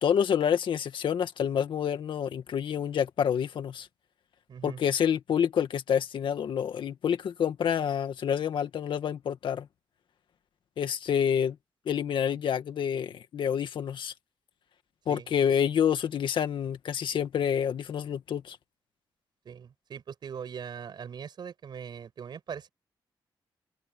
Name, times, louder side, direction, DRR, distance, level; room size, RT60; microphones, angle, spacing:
voice 1, 0.0-3.9 4.6-9.7 10.8-11.6 11.9-14.1 15.1-18.6, left 8 dB, 80° left, 2.0 m, -28 dB
voice 2, 4.5-4.8 15.1-15.6 19.4-22.7, right 7 dB, 60° right, 5.8 m, -41 dB
wide cardioid pair, 135°, 8 cm